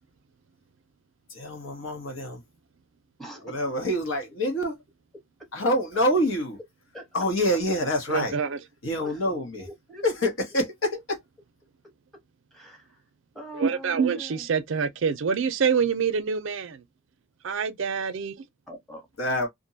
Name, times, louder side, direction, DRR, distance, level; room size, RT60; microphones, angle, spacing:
voice 1, 1.3-2.4 3.4-4.8 5.5-6.6 7.1-8.3 8.8-9.7 10.0-11.2 19.2-19.5, equal, 80° left, 1.1 m, -26 dB
voice 2, 3.2-3.5 6.9-7.1 9.0-10.6 11.8-12.2 12.5-13.0 13.3-14.5 18.7-19.1, right 1 dB, ahead, 0.9 m, -44 dB
voice 3, 8.1-8.6 13.5-16.8 17.4-18.5, right 6 dB, 70° right, 0.4 m, -26 dB
2.6 x 2.2 x 2.6 m
head